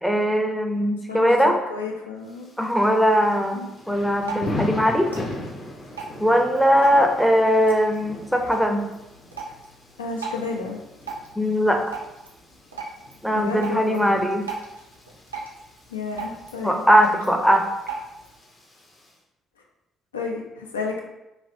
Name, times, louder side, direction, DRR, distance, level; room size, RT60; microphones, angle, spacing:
voice 1, 0.0-1.6 2.6-5.1 6.2-8.8 11.4-11.8 13.2-14.4 16.6-17.6, equal, ahead, 3 dB, 0.5 m, -20 dB
voice 2, 1.1-2.5 3.5-3.7 10.0-10.8 13.3-14.2 15.9-16.8 20.1-21.0, left 4 dB, 85° left, 0 dB, 0.3 m, -31 dB
Thunder / Rain, 2.3-19.1, left 1 dB, 35° left, 0.8 m, -39 dB
Drip, 3.9-18.4, right 4 dB, 90° right, 0.4 m, -39 dB
3.2 x 2.5 x 2.7 m, 0.95 s
figure-of-eight pair, 50°, 0 cm